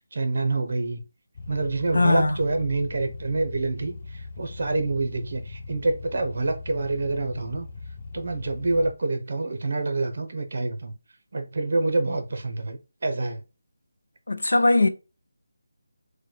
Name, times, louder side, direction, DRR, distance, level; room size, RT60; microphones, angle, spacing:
voice 1, 0.1-1.0 1.5-7.7 8.1-10.9 11.3-13.4, right 2 dB, 50° right, 0.7 m, -27 dB
sound 1, 1.3-8.9, left 3 dB, 30° left, 0.6 m, -40 dB
voice 2, 1.9-2.4 14.3-14.9, left 2 dB, 85° left, 0.5 m, -20 dB
3.1 x 2.2 x 4.1 m
figure-of-eight pair, 170°, 0 cm